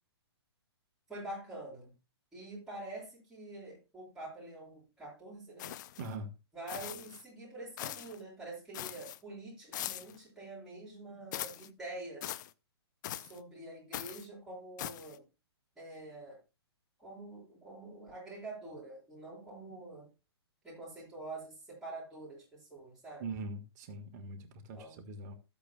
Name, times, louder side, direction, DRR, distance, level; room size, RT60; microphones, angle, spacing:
voice 1, 1.1-1.9 2.3-5.7 6.5-12.3 13.1-15.2 15.8-16.4 17.0-20.1 20.6-23.2 24.7-25.0, right 2 dB, 5° right, 5.9 m, -46 dB
sound 1, 5.6-6.1 6.7-7.2 7.8-8.2 8.7-9.2 9.7-10.2 11.3-11.7 12.2-12.5 13.0-13.4 13.9-14.3 14.8-15.2, left 13 dB, 45° left, 0.6 m, -41 dB
voice 2, 6.0-6.3 23.2-24.4 24.6-25.3, right 2 dB, 40° right, 1.6 m, -41 dB
13.5 x 8.3 x 2.3 m
hypercardioid pair, 145°, 14 cm